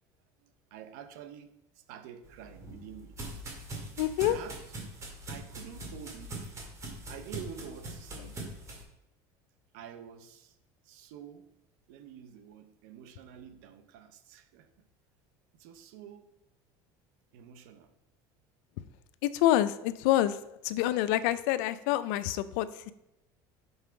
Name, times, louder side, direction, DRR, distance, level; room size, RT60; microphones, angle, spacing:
voice 1, 0.4-3.2 4.2-4.9 5.3-6.5 7.1-8.4 9.7-10.6 10.8-11.5 11.9-14.7 15.5-16.3 17.3-17.9, right 9 dB, 80° right, 0.8 m, -48 dB
sound 1, 2.2-8.8, right 2 dB, 30° right, 2.3 m, -42 dB
voice 2, 4.0-4.4 19.2-20.4 20.6-22.9, left 13 dB, 75° left, 0.5 m, -27 dB
5.9 x 5.5 x 4.5 m
supercardioid pair, 120°, 10 cm